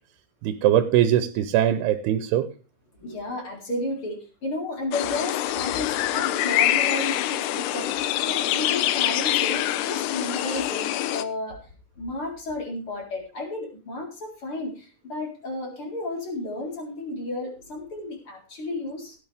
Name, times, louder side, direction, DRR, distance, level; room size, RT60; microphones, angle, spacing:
voice 1, 0.4-2.5, right 11 dB, 85° right, 2.8 m, -21 dB
voice 2, 2.9-7.9 8.2-11.7 12.0-19.2, left 2 dB, 35° left, 4.5 m, -33 dB
sound 1, 4.9-11.2, left 13 dB, 90° left, 2.9 m, -25 dB
17.0 x 10.0 x 3.5 m
omnidirectional pair, 4.5 m